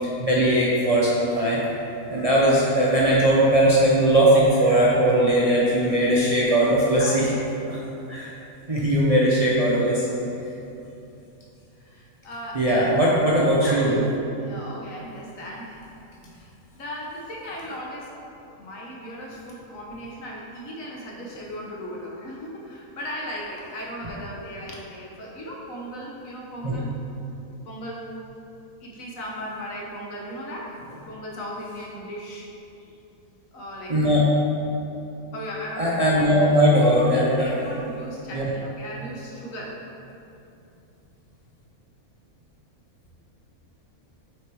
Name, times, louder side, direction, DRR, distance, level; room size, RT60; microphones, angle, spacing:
voice 1, 0.2-7.3 7.6-7.8 8.1-8.3 8.7-10.2 12.5-14.0 26.6-26.7 33.9-34.2 35.8-37.5 38.3-38.5, right 1 dB, 35° right, -6 dB, 0.6 m, -19 dB
voice 2, 4.7-5.2 11.8-12.9 14.4-15.8 16.3-18.1 18.4-26.9 27.7-28.1 28.8-30.8 31.1-32.5 33.5-33.9 35.3-36.5 36.8-39.7, equal, 65° left, -3 dB, 1.4 m, -37 dB
6.4 x 4.3 x 4.6 m, 2.8 s
omnidirectional pair, 1.5 m